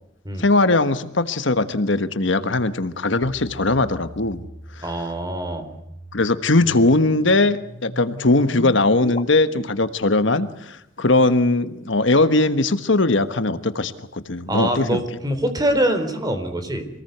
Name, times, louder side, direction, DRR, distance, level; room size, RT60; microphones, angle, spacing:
voice 1, 0.4-4.5 4.8-4.9 6.1-15.0, left 2 dB, 65° left, 11 dB, 1.4 m, -20 dB
sound 1, 3.2-9.2, left 1 dB, 35° left, 1.8 m, -38 dB
voice 2, 4.8-5.7 14.5-16.9, right 1 dB, 20° right, 8 dB, 3.8 m, -24 dB
26.5 x 19.5 x 8.0 m, 0.78 s
head